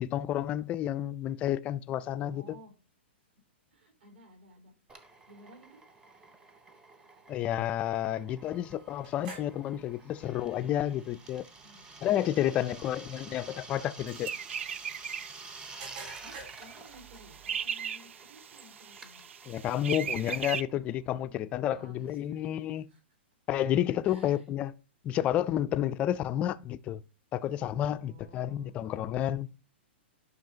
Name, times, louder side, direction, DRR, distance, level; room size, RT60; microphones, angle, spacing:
voice 1, 0.0-2.4 7.3-11.5 12.0-14.3 19.5-22.9 23.5-24.7 25.0-27.0 27.3-29.5, left 11 dB, 20° left, 0.3 m, -30 dB
voice 2, 2.0-2.7 3.7-4.7 5.3-5.8 11.6-11.9 12.6-13.4 16.2-19.2 21.7-23.0 24.0-24.5 25.1-25.2 27.9-28.8 29.4-29.5, equal, 70° right, 4.4 m, -55 dB
Drill, 4.9-21.2, right 3 dB, 10° right, 0.7 m, -51 dB
sound 1, 8.4-17.7, right 4 dB, 50° right, 3.8 m, -53 dB
sound 2, 14.1-20.6, right 8 dB, 90° right, 0.4 m, -39 dB
10.5 x 5.5 x 2.8 m
hypercardioid pair, 160°, 6 cm